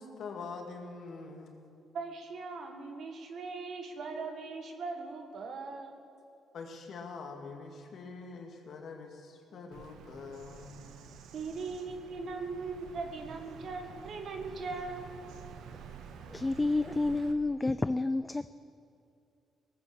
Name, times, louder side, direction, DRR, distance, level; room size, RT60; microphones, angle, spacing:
voice 1, 0.0-1.6 6.5-10.8, left 4 dB, 60° left, 3 dB, 2.0 m, -44 dB
voice 2, 1.9-6.0 11.3-15.1, right 4 dB, 60° right, 5 dB, 1.7 m, -39 dB
Bird vocalization bird call bird song, 9.7-17.3, right 7 dB, 85° right, 1.0 m, -49 dB
voice 3, 16.3-18.6, left 2 dB, 15° left, 13 dB, 0.3 m, -30 dB
18.5 x 8.4 x 7.0 m, 2.6 s
cardioid pair, 90°, 0 cm